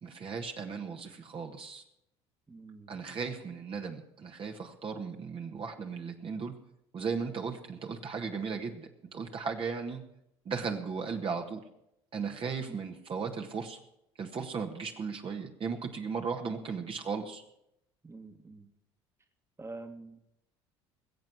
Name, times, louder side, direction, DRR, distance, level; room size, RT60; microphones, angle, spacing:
voice 1, 0.0-1.8 2.9-6.5 6.9-10.0 10.4-11.6 12.1-13.8 14.2-17.4, right 5 dB, 40° right, 3 dB, 1.7 m, -36 dB
voice 2, 2.5-3.0 12.7-12.8 18.0-18.7 19.6-20.2, right 3 dB, 20° right, 6 dB, 1.8 m, -46 dB
21.0 x 7.8 x 6.3 m, 0.80 s
hypercardioid pair, 70°, 13 cm